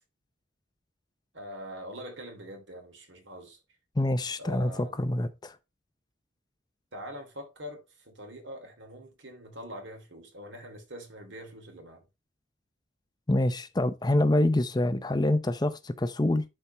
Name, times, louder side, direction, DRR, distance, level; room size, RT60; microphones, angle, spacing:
voice 1, 1.3-3.6 4.4-5.3 6.9-12.1, equal, 70° right, 3.0 m, -44 dB
voice 2, 4.0-5.5 13.3-16.4, left 1 dB, 20° left, 0.6 m, -26 dB
12.0 x 4.4 x 3.3 m
head